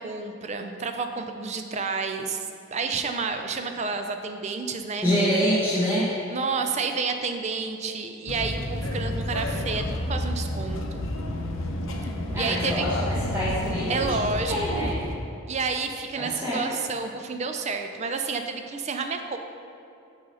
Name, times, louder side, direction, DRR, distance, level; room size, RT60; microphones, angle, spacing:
voice 1, 0.0-5.1 6.3-11.1 12.4-12.9 13.9-14.9 15.5-19.4, right 4 dB, 30° right, 6 dB, 0.4 m, -30 dB
voice 2, 5.0-6.1 12.3-14.1 14.5-15.0 16.2-16.6, equal, 10° right, -10 dB, 1.0 m, -26 dB
sound 1, 8.3-15.2, left 1 dB, 65° left, 0.7 m, -30 dB
6.7 x 4.1 x 5.5 m, 2.7 s
head